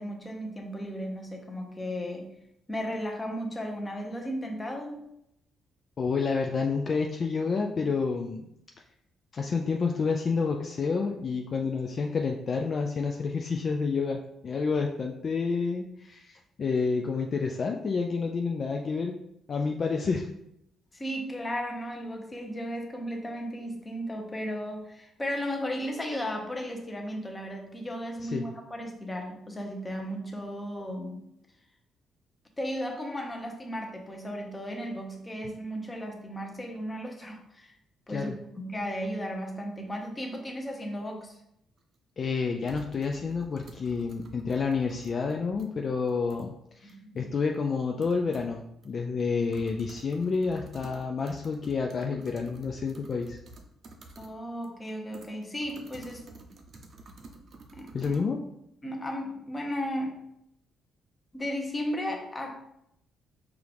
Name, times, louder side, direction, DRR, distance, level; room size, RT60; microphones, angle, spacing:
voice 1, 0.0-2.3 2.7-5.0 20.9-31.3 32.6-37.7 38.1-41.4 46.8-47.3 54.2-56.3 57.7-58.2 58.8-60.2 61.3-62.6, equal, 20° left, 2 dB, 0.8 m, -35 dB
voice 2, 6.0-8.5 9.3-19.2 19.5-20.3 28.2-28.5 38.1-38.3 42.2-53.4 57.9-58.4, left 4 dB, 45° left, 2 dB, 0.3 m, -29 dB
sound 1, 41.8-41.9 42.6-45.7 46.1-46.5 46.9-47.0 47.5-47.6 48.0-48.6 48.8-48.9 49.2-54.3 54.6-58.2, right 2 dB, 55° right, 0.6 m, -50 dB
4.5 x 2.5 x 3.5 m, 0.79 s
cardioid pair, 90°, 0 cm